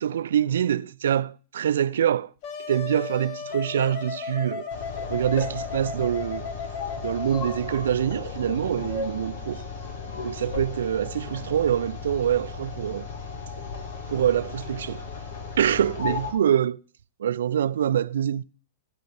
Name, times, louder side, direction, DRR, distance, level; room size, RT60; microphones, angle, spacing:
voice 1, 0.0-2.3 2.7-4.7 5.1-6.5 7.0-9.7 10.2-13.1 14.1-15.0 15.6-16.8 17.2-18.4, right 9 dB, 70° right, 0.5 m, -25 dB
Wind instrument woodwind instrument, 2.4-7.9, left 6 dB, 45° left, 1.9 m, -35 dB
sound 1, 4.7-16.3, left 4 dB, 65° left, 4.0 m, -35 dB
16.0 x 5.3 x 7.9 m
hypercardioid pair, 110°, 0 cm